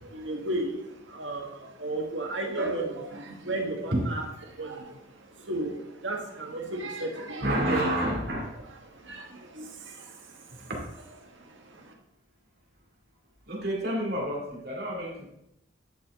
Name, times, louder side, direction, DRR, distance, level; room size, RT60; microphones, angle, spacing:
voice 1, 0.1-7.8 8.8-10.7 11.2-11.9, right 2 dB, 85° right, 1 dB, 1.6 m, -35 dB
voice 2, 7.4-8.5 10.7-10.8 13.5-15.3, right 1 dB, 55° right, -2 dB, 2.5 m, -29 dB
10.5 x 5.7 x 3.7 m, 0.82 s
head